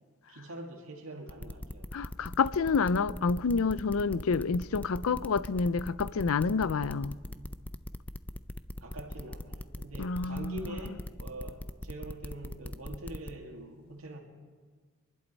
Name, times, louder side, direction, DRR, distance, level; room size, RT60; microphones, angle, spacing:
voice 1, 0.3-1.9 8.8-14.2, right 1 dB, 90° right, 2.0 m, -44 dB
sound 1, 1.3-13.3, left 1 dB, 5° left, 0.4 m, -40 dB
voice 2, 1.9-7.1 10.0-10.6, left 4 dB, 90° left, 0.5 m, -28 dB
25.5 x 11.5 x 4.1 m
head